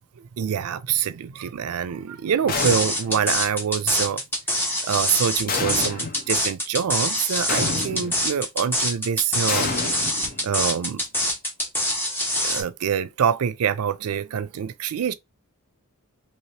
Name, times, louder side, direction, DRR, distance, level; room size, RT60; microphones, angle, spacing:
voice 1, 0.2-4.2 4.8-9.7 10.4-11.0 12.4-15.1, right 8 dB, 85° right, 0.4 m, -25 dB
sound 1, 2.5-3.2 5.5-6.3 7.5-8.3 9.5-10.7, left 3 dB, 40° left, 0.7 m, -29 dB
sound 2, 2.5-12.6, equal, 10° left, 1.0 m, -25 dB
3.0 x 2.8 x 3.2 m
head